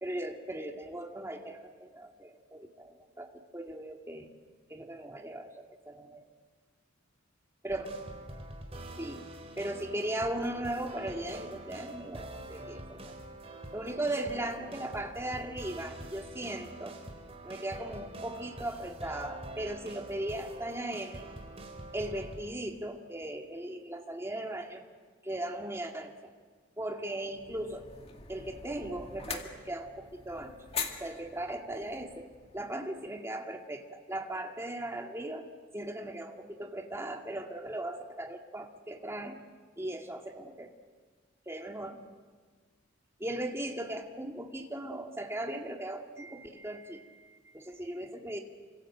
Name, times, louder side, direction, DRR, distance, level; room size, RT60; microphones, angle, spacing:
voice 1, 0.0-4.3 4.7-6.3 7.6-7.9 9.0-9.2 9.6-13.1 13.7-17.0 17.4-21.3 21.9-24.8 25.2-26.3 26.8-27.9 28.3-30.5 31.0-35.5 35.7-39.4 39.8-40.7 41.5-42.0 43.2-48.4, right 1 dB, 15° right, 2 dB, 2.3 m, -38 dB
sound 1, 7.7-22.7, right 1 dB, 30° right, 3.7 m, -45 dB
sound 2, 27.4-32.8, left 5 dB, 30° left, 2.2 m, -43 dB
29.5 x 26.0 x 7.6 m, 1.5 s
head